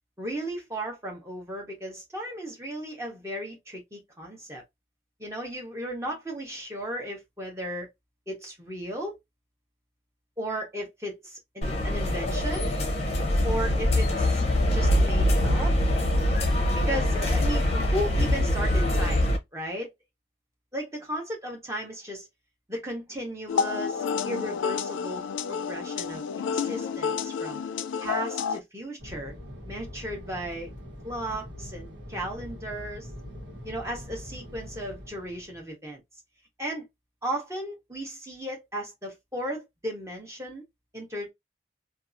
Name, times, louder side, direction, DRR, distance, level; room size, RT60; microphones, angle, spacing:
voice 1, 0.2-4.6 5.2-7.9 8.3-9.2 10.4-12.7 13.4-14.4 14.7-15.8 16.7-19.9 20.7-22.3 22.7-25.2 25.5-26.2 26.5-27.6 28.0-29.3 29.7-30.7 31.0-33.1 33.6-36.0 36.6-36.9 37.2-40.6 40.9-41.3, right 1 dB, 15° right, 0.8 m, -35 dB
sound 1, 11.6-19.4, left 1 dB, 35° left, 0.6 m, -24 dB
sound 2, 23.5-28.6, left 6 dB, 90° left, 0.3 m, -30 dB
Fixed-wing aircraft airplane, 29.0-35.7, equal, 85° right, 1.2 m, -43 dB
2.7 x 2.3 x 2.4 m
head